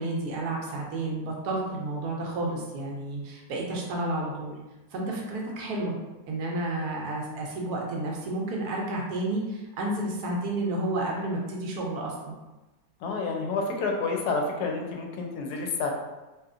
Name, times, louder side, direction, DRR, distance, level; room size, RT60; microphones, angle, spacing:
voice 1, 0.0-4.6 4.9-6.0 6.3-12.3, right 2 dB, 70° right, -1 dB, 1.0 m, -31 dB
voice 2, 13.0-15.9, left 3 dB, 70° left, 1 dB, 1.0 m, -29 dB
2.8 x 2.7 x 2.4 m, 1.1 s
omnidirectional pair, 1.9 m